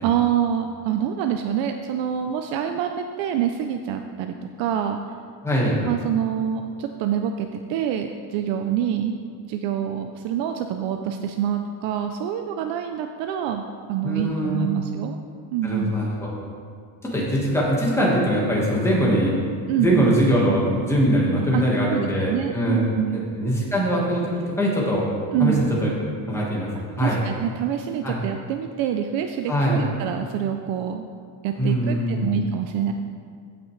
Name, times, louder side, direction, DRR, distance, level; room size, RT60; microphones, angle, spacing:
voice 1, 0.0-5.0 5.9-9.2 9.5-15.2 15.5-15.9 19.7-20.1 21.5-23.3 25.3-25.7 27.0-31.1 31.4-32.9, right 9 dB, 75° right, 5 dB, 0.6 m, -26 dB
voice 2, 5.4-5.8 14.0-14.7 15.6-16.3 17.0-19.4 19.8-22.8 23.1-25.0 25.4-25.5 25.8-25.9 26.3-26.7 27.0-27.2 28.0-28.2 29.5-29.8 31.6-32.3, equal, 5° left, -5 dB, 1.4 m, -22 dB
15.5 x 6.0 x 3.2 m, 2.2 s
cardioid pair, 175°, 45 cm